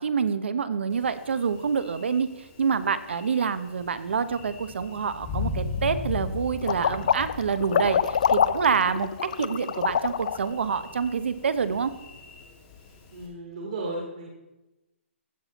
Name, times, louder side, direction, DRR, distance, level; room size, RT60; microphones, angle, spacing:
voice 1, 0.0-11.9, right 6 dB, 60° right, 13 dB, 0.8 m, -27 dB
Thunder, 0.9-13.3, left 4 dB, 15° left, 1.4 m, -39 dB
sound 1, 6.6-10.5, left 8 dB, 35° left, 0.3 m, -24 dB
voice 2, 13.1-14.3, right 2 dB, 35° right, -1 dB, 1.7 m, -34 dB
15.0 x 6.0 x 4.0 m, 0.99 s
hypercardioid pair, 180°, 7 cm